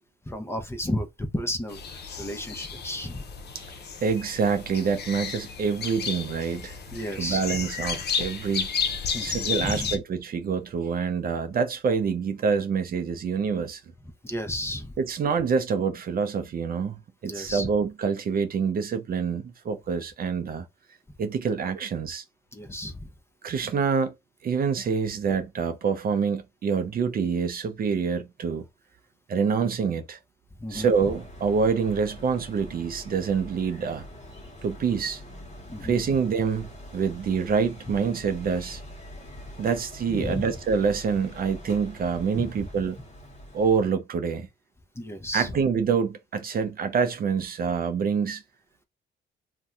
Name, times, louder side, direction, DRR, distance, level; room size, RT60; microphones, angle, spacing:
voice 1, 0.3-3.3 6.9-7.4 9.1-10.0 14.2-14.9 17.2-17.7 22.5-23.1 30.6-30.9 35.7-35.9 40.1-40.5 42.4-42.7 45.0-45.5, left 1 dB, 10° left, 0.7 m, -33 dB
sound 1, 1.7-10.0, left 6 dB, 55° left, 0.7 m, -33 dB
voice 2, 4.0-6.7 7.2-8.7 9.2-13.8 15.0-17.0 17.2-20.7 21.2-22.2 23.4-24.1 24.4-28.7 29.3-30.2 30.7-34.1 34.6-35.2 35.8-38.8 39.6-43.0 43.5-44.5 45.3-48.4, right 6 dB, 50° right, 0.5 m, -26 dB
sound 2, 30.7-43.9, left 1 dB, 35° left, 1.1 m, -44 dB
2.6 x 2.2 x 3.5 m
cardioid pair, 90°, 20 cm